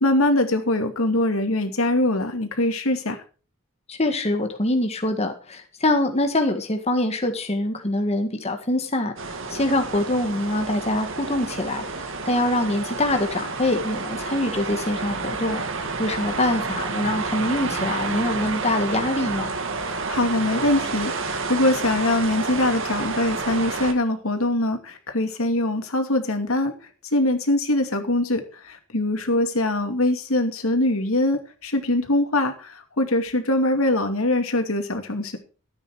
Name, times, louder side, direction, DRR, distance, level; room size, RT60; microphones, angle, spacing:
voice 1, 0.0-3.2 20.1-26.7 27.1-35.4, left 1 dB, 85° left, 6 dB, 2.5 m, -23 dB
voice 2, 3.9-15.6 16.0-19.5, left 1 dB, 30° left, 5 dB, 1.6 m, -24 dB
sound 1, 9.2-23.9, right 4 dB, 65° right, 2.1 m, -30 dB
13.5 x 9.2 x 4.8 m, 0.37 s
head